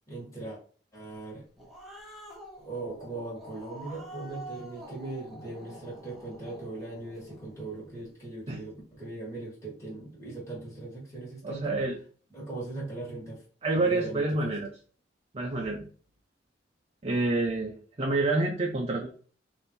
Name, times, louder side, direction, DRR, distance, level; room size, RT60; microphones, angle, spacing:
voice 1, 0.1-0.6 0.9-1.4 2.6-11.7 12.3-13.4 13.7-14.5, right 2 dB, 15° left, -6 dB, 1.6 m, -39 dB
Growling, 1.3-8.1, right 1 dB, ahead, 0.9 m, -47 dB
voice 2, 11.4-12.0 13.6-14.7 15.3-15.8 17.0-19.1, right 2 dB, 35° right, 0 dB, 0.6 m, -28 dB
3.5 x 2.6 x 4.3 m, 0.42 s
head